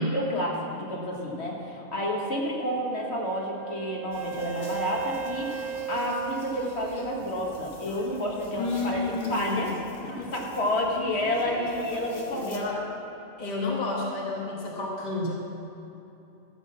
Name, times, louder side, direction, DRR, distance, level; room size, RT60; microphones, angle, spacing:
voice 1, 0.0-9.0 9.3-9.7 10.1-12.6, left 1 dB, 50° left, -2 dB, 1.9 m, -30 dB
Wind instrument woodwind instrument, 2.9-7.8, right 9 dB, 45° right, 0.5 m, -37 dB
sound 1, 4.1-12.6, left 1 dB, 70° left, 1.8 m, -44 dB
voice 2, 8.6-9.7 12.5-12.8 13.4-15.3, left 2 dB, 35° left, -3 dB, 1.5 m, -30 dB
14.0 x 6.9 x 7.2 m, 2.9 s
omnidirectional pair, 1.4 m